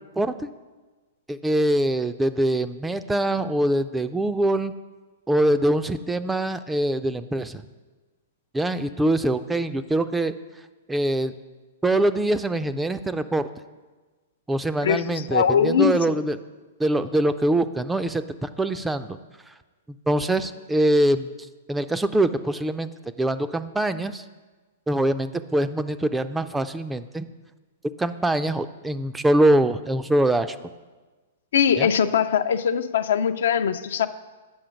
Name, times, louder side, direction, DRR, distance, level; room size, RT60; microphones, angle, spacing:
voice 1, 0.2-0.5 1.3-4.7 5.3-7.6 8.5-10.3 10.9-11.3 11.8-13.5 14.5-16.4 16.8-19.2 19.5-19.6 20.1-21.3 21.7-22.9 23.2-24.2 24.9-27.2 28.0-30.6 31.8-31.9, right 1 dB, 10° right, 11 dB, 0.3 m, -23 dB
voice 2, 15.3-16.2 31.5-34.1, left 8 dB, 70° left, 11 dB, 0.4 m, -21 dB
7.8 x 5.5 x 5.1 m, 1.3 s
hypercardioid pair, 130°, 0 cm